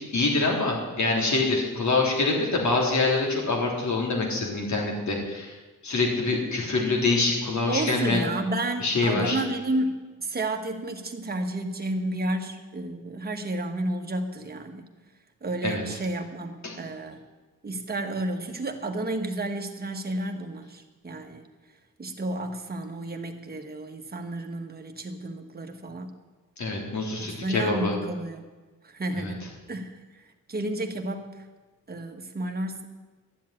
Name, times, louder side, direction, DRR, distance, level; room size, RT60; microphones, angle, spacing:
voice 1, 0.1-5.5 5.8-8.2 8.8-9.4 15.6-15.8 16.6-16.8 26.6-27.9 29.2-29.3, left 3 dB, 55° left, -1 dB, 3.5 m, -25 dB
voice 2, 7.7-14.9 15.4-17.2 17.6-21.5 22.0-26.1 27.2-28.4 28.8-29.9 30.5-31.4 31.9-32.8, right 1 dB, 30° right, 4 dB, 1.4 m, -31 dB
12.0 x 7.5 x 9.9 m, 1.3 s
wide cardioid pair, 130°, 34 cm